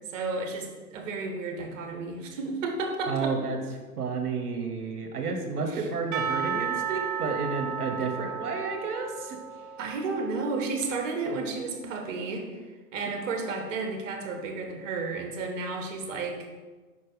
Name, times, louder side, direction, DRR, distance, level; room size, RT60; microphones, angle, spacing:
voice 1, 0.1-3.4 5.7-5.9 9.8-12.6 12.9-16.6, right 3 dB, 55° right, 4 dB, 1.3 m, -32 dB
voice 2, 3.1-3.6 4.0-9.4, right 4 dB, 75° right, 4 dB, 1.2 m, -31 dB
Percussion / Church bell, 6.1-10.9, right 7 dB, 35° right, 0.7 m, -34 dB
5.6 x 4.6 x 4.8 m, 1.3 s
hypercardioid pair, 110°, 45 cm